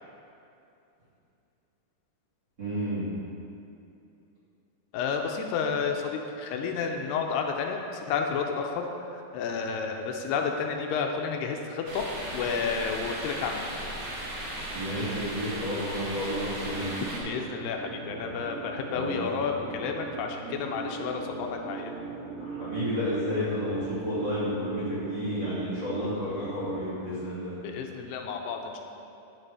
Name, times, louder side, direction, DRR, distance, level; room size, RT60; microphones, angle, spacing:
voice 1, 2.6-3.1 14.7-16.9 18.9-19.6 22.4-27.6, equal, 30° right, -10 dB, 2.6 m, -31 dB
voice 2, 4.9-8.8 9.1-12.0 12.3-13.7 17.2-21.9 27.6-28.8, left 5 dB, 85° left, 3 dB, 2.7 m, -31 dB
sound 1, 11.9-17.2, right 1 dB, 55° right, 3.4 m, -36 dB
sound 2, 16.5-26.9, right 5 dB, 75° right, 2.3 m, -39 dB
10.0 x 7.8 x 4.8 m, 2.7 s
omnidirectional pair, 4.7 m